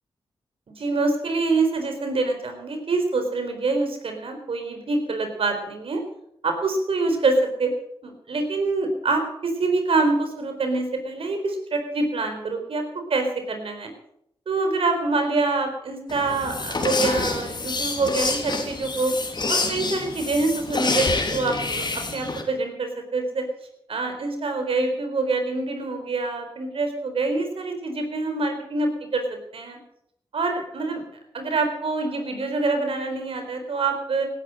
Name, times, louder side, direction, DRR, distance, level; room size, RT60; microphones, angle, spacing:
voice 1, 0.8-6.0 6.4-7.7 8.0-12.8 13.1-13.9 14.5-19.1 19.5-21.8 22.1-23.4 23.9-29.2 29.5-29.8 30.3-31.0 31.3-34.3, right 3 dB, 70° right, 5 dB, 4.3 m, -25 dB
sound 1, 16.1-22.4, left 3 dB, 50° left, 3.5 m, -27 dB
18.0 x 11.0 x 6.4 m, 0.74 s
cardioid pair, 55°, 10 cm